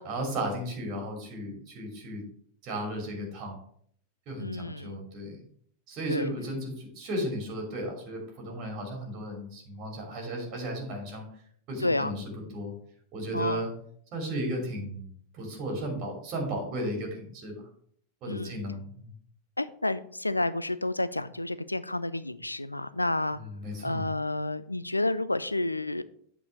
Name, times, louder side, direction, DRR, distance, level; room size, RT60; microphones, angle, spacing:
voice 1, 0.0-2.2 2.6-3.6 4.3-5.4 5.9-11.3 11.7-12.7 13.1-13.7 14.1-17.6 18.2-19.1 23.3-24.1, right 1 dB, 40° right, 0 dB, 2.9 m, -35 dB
voice 2, 4.4-5.0 6.1-6.3 11.8-12.1 13.3-13.6 18.3-18.6 19.6-23.4 23.8-26.0, left 2 dB, 85° left, 15 dB, 0.4 m, -30 dB
8.3 x 4.6 x 5.3 m, 0.63 s
figure-of-eight pair, 90°, 0 cm